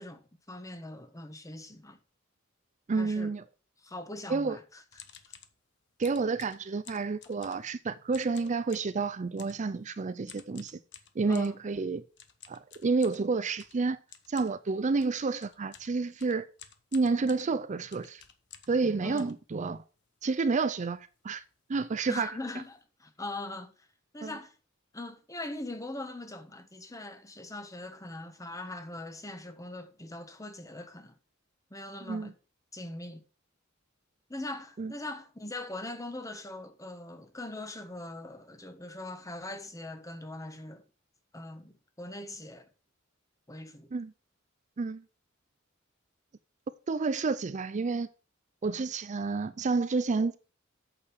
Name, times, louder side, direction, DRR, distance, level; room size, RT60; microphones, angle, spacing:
voice 1, 0.0-2.0 2.9-3.3 3.8-4.8 11.3-11.6 19.0-19.3 22.1-23.7 24.1-24.5 24.9-31.2 31.7-32.3 32.7-33.2 34.3-40.8 41.3-42.7 43.5-43.9, left 2 dB, 15° left, 1.2 m, -41 dB
voice 2, 2.9-3.4 4.3-4.6 6.0-10.8 11.2-12.0 12.5-14.0 14.3-16.5 16.9-18.2 18.7-19.8 20.2-21.4 21.7-22.3 24.2-24.3 32.1-32.3 34.8-34.9 43.9-44.1 44.8-45.0 46.9-48.1 48.6-50.4, right 4 dB, 35° right, 0.4 m, -30 dB
sound 1, 4.9-5.6 6.0-7.8 8.1-9.0 9.4-9.7 10.3-11.6 12.2-18.8 19.2-20.0 20.5-20.6 20.8-21.1 21.3-21.5 22.1-22.2 22.5-22.7, left 9 dB, 60° left, 1.1 m, -52 dB
8.6 x 6.7 x 4.6 m
head